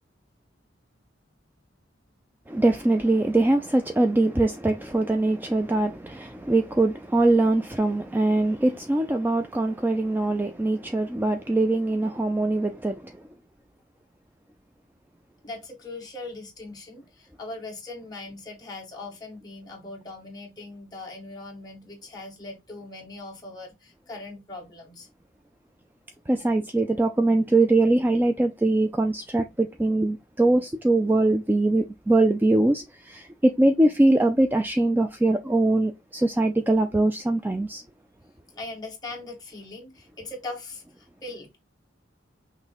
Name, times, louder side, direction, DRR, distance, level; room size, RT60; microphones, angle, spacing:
voice 1, 2.5-13.1 26.3-37.8, right 2 dB, 10° right, 0.3 m, -22 dB
voice 2, 15.4-25.1 38.5-41.6, left 2 dB, 20° left, 1.6 m, -40 dB
5.7 x 2.2 x 4.1 m
head